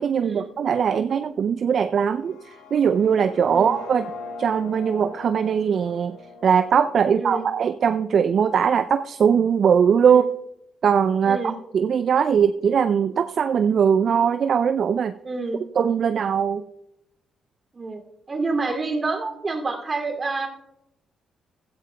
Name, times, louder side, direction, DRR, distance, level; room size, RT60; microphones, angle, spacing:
voice 1, 0.0-4.1 4.4-6.2 6.4-10.2 10.8-11.4 11.7-15.1 15.8-16.6, right 7 dB, 55° right, 11 dB, 0.4 m, -20 dB
sound 1, 2.1-8.1, left 2 dB, 75° left, 1.4 m, -41 dB
voice 2, 7.1-7.5 10.1-10.3 11.2-11.6 15.2-15.6 17.7-18.0 18.3-20.5, right 3 dB, 35° right, 4 dB, 2.6 m, -28 dB
16.0 x 13.0 x 2.3 m, 0.84 s
hypercardioid pair, 45°, 0 cm